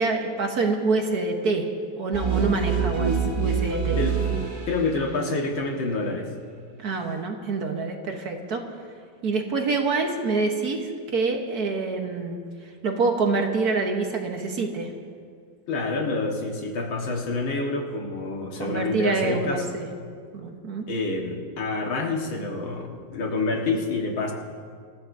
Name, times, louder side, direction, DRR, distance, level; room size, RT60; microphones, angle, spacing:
voice 1, 0.0-1.7 2.0-4.0 6.8-8.6 9.2-10.9 11.1-12.4 12.8-14.9 18.6-19.9 20.3-20.8, right 3 dB, 55° right, 3 dB, 1.5 m, -26 dB
sound 1, 2.1-5.0, right 6 dB, 30° right, 1.3 m, -25 dB
voice 2, 4.7-6.3 15.7-19.8 20.9-24.3, left 3 dB, 75° left, 0 dB, 2.4 m, -27 dB
26.5 x 14.5 x 2.7 m, 2.2 s
omnidirectional pair, 2.1 m